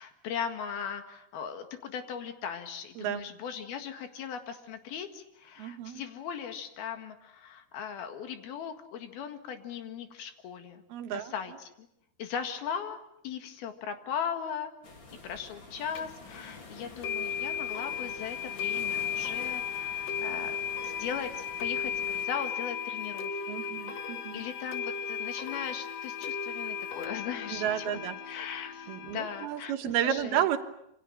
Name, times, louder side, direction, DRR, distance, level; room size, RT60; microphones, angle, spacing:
voice 1, 0.0-10.8 11.1-11.7 12.2-14.7 15.2-20.5 20.8-23.4 24.0-27.9 28.3-30.5, left 7 dB, 75° left, 7 dB, 3.7 m, -38 dB
voice 2, 5.6-6.0 10.9-11.3 23.5-24.4 27.5-28.2 28.9-30.6, right 10 dB, 80° right, 7 dB, 3.3 m, -31 dB
sound 1, 14.8-22.3, left 3 dB, 30° left, 3.1 m, -49 dB
sound 2, 15.9-16.0 17.0-29.5, left 7 dB, 55° left, 2.1 m, -35 dB
27.0 x 25.5 x 7.5 m, 0.77 s
omnidirectional pair, 4.5 m